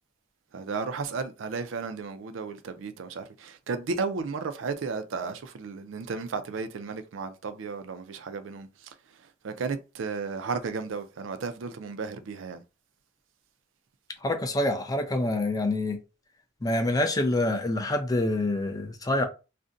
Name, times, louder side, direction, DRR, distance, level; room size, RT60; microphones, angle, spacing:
voice 1, 0.5-8.7 9.4-12.6, right 4 dB, 70° right, 0.4 m, -34 dB
voice 2, 14.2-16.0 16.6-19.3, left 2 dB, 20° left, 0.4 m, -26 dB
2.5 x 2.1 x 3.7 m
head